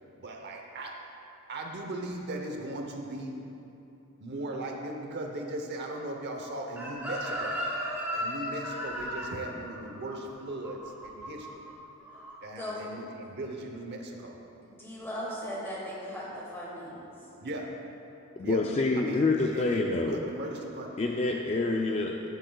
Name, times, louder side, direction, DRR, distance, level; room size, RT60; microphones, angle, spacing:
voice 1, 0.2-1.1 1.5-3.4 4.2-7.6 8.1-11.7 12.4-14.4 17.4-17.8 18.4-18.6 19.0-21.0, right 1 dB, 50° right, 2 dB, 0.8 m, -38 dB
Chicken rooster, 6.8-11.7 12.0-12.3, equal, 10° right, 1.8 m, -35 dB
voice 2, 14.6-17.1, equal, 10° left, -6 dB, 2.0 m, -38 dB
voice 3, 18.4-20.2 21.0-22.2, left 3 dB, 30° left, 1 dB, 0.4 m, -27 dB
15.5 x 7.9 x 2.3 m, 2.9 s
head